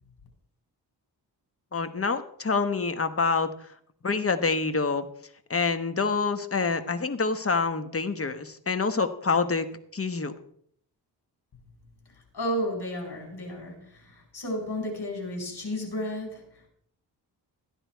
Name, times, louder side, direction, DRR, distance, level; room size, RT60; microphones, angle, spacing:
voice 1, 1.7-3.5 4.0-5.1 5.5-9.7 9.9-10.3, left 4 dB, 35° left, 10 dB, 1.2 m, -26 dB
voice 2, 12.3-16.7, equal, 65° left, 2 dB, 5.2 m, -33 dB
14.5 x 10.0 x 4.5 m, 0.65 s
cardioid pair, 90°, 42 cm